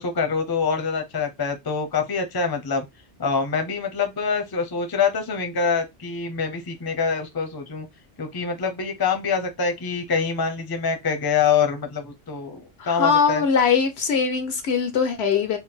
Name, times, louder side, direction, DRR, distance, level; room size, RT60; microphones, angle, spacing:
voice 1, 0.0-2.8 3.2-7.9 8.2-13.4, left 5 dB, 25° left, 0.6 m, -25 dB
voice 2, 12.8-15.6, left 6 dB, 65° left, 0.8 m, -21 dB
4.1 x 2.2 x 3.7 m
omnidirectional pair, 1.3 m